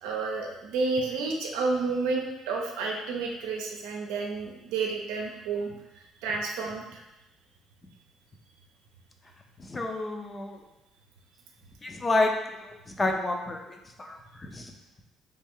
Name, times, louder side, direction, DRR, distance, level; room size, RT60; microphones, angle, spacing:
voice 1, 0.0-5.7 6.2-7.0, right 4 dB, 90° right, 0 dB, 0.6 m, -30 dB
voice 2, 9.6-10.6 11.8-12.3 12.6-14.7, left 2 dB, 25° left, 3 dB, 0.5 m, -30 dB
3.3 x 2.5 x 3.6 m, 0.97 s
supercardioid pair, 75°, 0 cm